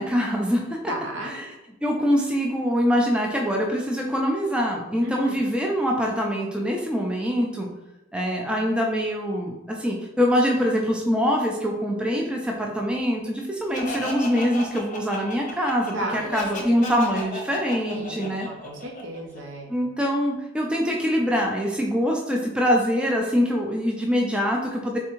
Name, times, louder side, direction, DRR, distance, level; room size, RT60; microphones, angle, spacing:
voice 1, 0.0-0.8 1.2-1.5 1.8-7.7 8.1-18.5 19.7-25.0, equal, 5° right, 0 dB, 0.3 m, -24 dB
voice 2, 0.9-1.4 5.0-5.4 15.9-16.2 17.9-19.7, right 1 dB, 70° right, 1 dB, 0.7 m, -34 dB
Laughter, 13.7-19.4, left 1 dB, 40° left, 0.6 m, -34 dB
3.5 x 3.2 x 3.0 m, 1.0 s
head